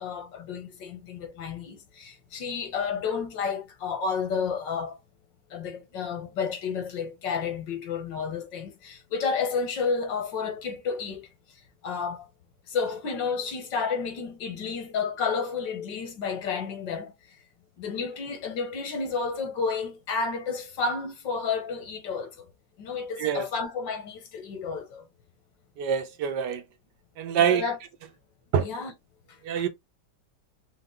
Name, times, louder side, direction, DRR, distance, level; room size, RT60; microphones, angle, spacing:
voice 1, 0.0-5.0 5.5-11.3 11.8-12.3 12.7-17.1 17.8-22.5 22.8-25.1 27.5-27.8 28.6-28.9 29.6-29.7, left 5 dB, 85° left, 2.0 m, -31 dB
voice 2, 25.8-26.6 27.2-27.6 28.5-28.7 29.4-29.7, right 8 dB, 75° right, 1.5 m, -25 dB
5.7 x 2.5 x 3.7 m
omnidirectional pair, 1.9 m